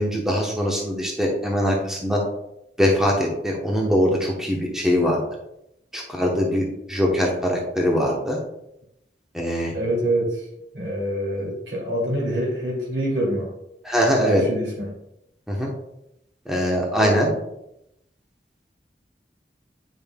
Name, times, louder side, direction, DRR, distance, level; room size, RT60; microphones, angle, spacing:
voice 1, 0.0-2.2 2.8-5.2 5.9-8.4 9.3-9.7 13.8-14.4 15.5-15.7 16.5-17.3, equal, 5° right, -2 dB, 0.9 m, -22 dB
voice 2, 9.7-10.4 10.7-13.5 14.2-15.0 17.0-17.1, right 1 dB, 85° right, -2 dB, 2.6 m, -25 dB
9.3 x 5.2 x 2.3 m, 0.82 s
head